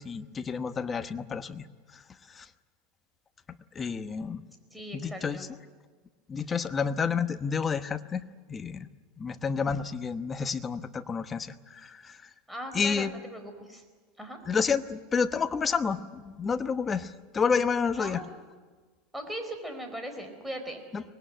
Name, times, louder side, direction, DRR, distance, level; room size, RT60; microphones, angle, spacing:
voice 1, 0.0-1.6 2.4-2.5 3.7-4.4 4.9-5.5 6.3-8.2 8.5-8.9 9.2-12.2 12.7-13.1 14.4-18.2 20.9-21.0, left 5 dB, 20° left, 10 dB, 1.1 m, -30 dB
voice 2, 4.7-5.5 12.5-13.8 14.2-14.4 18.0-18.3 19.1-20.8, right 1 dB, 5° right, 5 dB, 4.4 m, -39 dB
24.5 x 20.0 x 9.2 m, 1.4 s
supercardioid pair, 140°, 0 cm